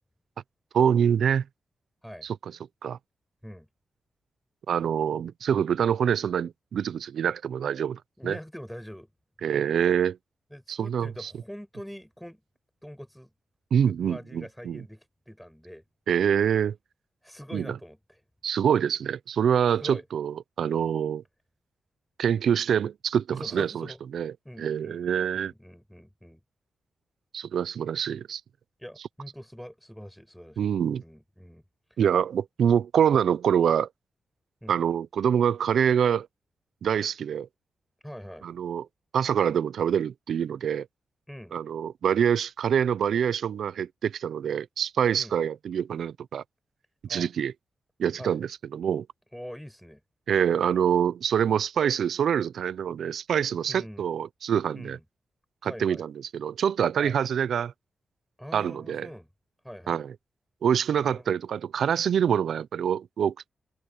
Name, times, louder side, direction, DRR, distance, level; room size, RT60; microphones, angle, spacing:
voice 1, 0.7-1.4 2.2-2.4 2.8-3.0 4.7-8.4 9.4-10.2 10.7-11.3 13.7-14.8 16.1-16.8 17.5-17.7 18.4-21.2 22.2-23.9 24.1-25.5 27.3-28.4 30.6-31.0 32.0-33.9 34.7-36.3 36.8-37.5 38.4-38.9 39.1-40.9 41.5-46.4 47.0-47.5 48.0-49.1 50.3-55.0 55.6-57.7 58.5-59.1 59.9-60.1 60.6-63.5, right 8 dB, 75° right, 0.5 m, -25 dB
voice 2, 8.2-9.1 10.5-12.4 12.8-13.3 13.8-15.8 17.2-18.2 19.8-20.0 23.3-24.0 24.5-25.1 25.4-26.4 28.8-30.7 31.0-31.6 31.9-32.0 34.6-34.8 38.0-38.5 41.3-41.6 45.2-45.4 47.1-47.3 48.2-48.4 49.3-50.0 53.7-54.1 54.7-55.0 55.6-56.0 57.0-57.2 58.4-59.3 59.6-60.0 61.0-61.4, equal, ahead, 5.4 m, -43 dB
wide cardioid pair, 180°, 0 cm